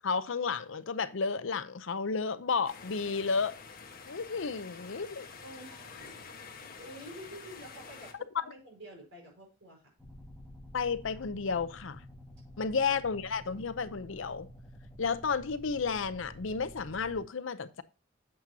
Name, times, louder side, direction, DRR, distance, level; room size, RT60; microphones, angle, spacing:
voice 1, 0.0-3.5 4.1-5.3 8.4-8.5 10.7-12.0 12.6-14.5 15.0-17.8, left 5 dB, 70° left, 0.6 m, -32 dB
sound 1, 2.6-8.1, left 5 dB, 45° left, 1.3 m, -48 dB
voice 2, 5.4-9.9 12.6-13.0, equal, 60° right, 4.9 m, -50 dB
sound 2, 10.0-17.2, equal, 5° left, 1.7 m, -50 dB
8.6 x 7.6 x 2.7 m
head